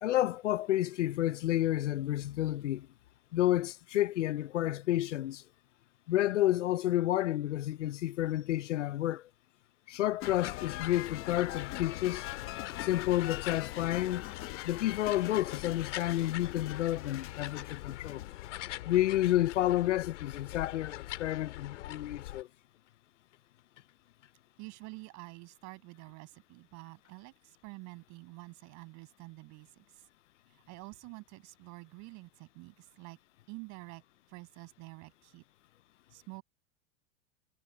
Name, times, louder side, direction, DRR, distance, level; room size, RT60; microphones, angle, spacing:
voice 1, 0.0-2.9 3.3-5.4 6.1-9.2 9.9-12.3 12.8-14.3 14.6-18.2 18.8-22.5, left 14 dB, 90° left, 0.7 m, -30 dB
sound 1, 10.2-22.4, left 15 dB, 75° left, 2.7 m, -43 dB
sound 2, 10.2-18.8, left 16 dB, 35° left, 0.9 m, -44 dB
voice 2, 24.6-30.0 30.7-33.2 33.5-34.0 34.3-35.4 36.1-36.4, right 26 dB, 50° right, 6.6 m, -48 dB
hypercardioid pair, 115°, 36 cm